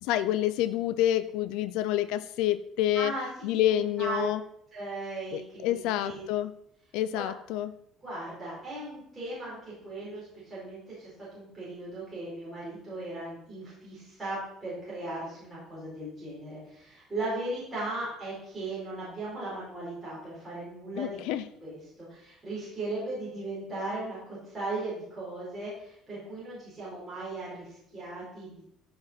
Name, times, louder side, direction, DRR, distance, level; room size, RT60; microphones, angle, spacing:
voice 1, 0.0-3.1 3.4-4.4 5.3-6.5 6.9-7.7 21.0-21.4, left 12 dB, 80° left, 11 dB, 0.5 m, -28 dB
voice 2, 2.9-3.3 3.7-4.3 4.7-6.2 7.1-7.3 8.0-21.1 21.6-28.6, right 2 dB, 10° right, -9 dB, 4.4 m, -37 dB
14.5 x 5.2 x 4.4 m, 0.74 s
cardioid pair, 175°, 0 cm